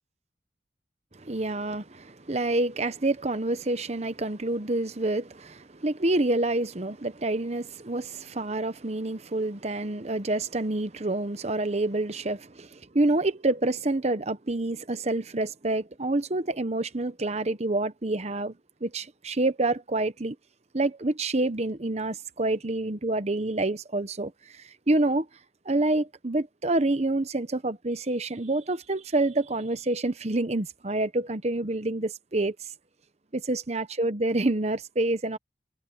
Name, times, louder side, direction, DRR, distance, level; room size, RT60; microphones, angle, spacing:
voice 1, 1.1-18.6 18.8-20.3 20.7-25.3 25.7-32.6 33.3-35.4, right 2 dB, 40° right, 1.0 m, -27 dB
head